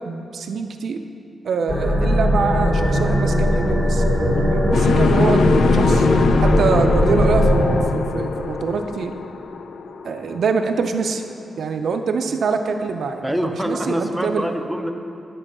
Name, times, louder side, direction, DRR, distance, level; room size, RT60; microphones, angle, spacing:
voice 1, 0.1-1.0 1.4-6.1 6.4-9.1 10.0-11.2 11.6-14.5, right 5 dB, 65° right, 6 dB, 0.4 m, -24 dB
Shock or Suspense, 1.7-7.8, left 1 dB, 30° left, 1.1 m, -18 dB
sound 1, 4.7-10.7, left 5 dB, 75° left, 0.3 m, -23 dB
voice 2, 13.2-14.9, equal, ahead, 3 dB, 0.5 m, -25 dB
9.9 x 4.4 x 6.0 m, 2.6 s
wide cardioid pair, 160°, 0 cm